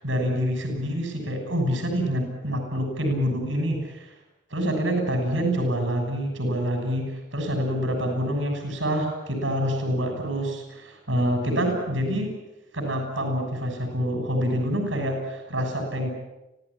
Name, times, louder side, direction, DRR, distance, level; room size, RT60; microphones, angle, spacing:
voice 1, 0.0-4.1 4.5-12.3 12.7-16.1, equal, 80° right, 3 dB, 6.7 m, -26 dB
26.0 x 16.5 x 10.0 m, 0.98 s
head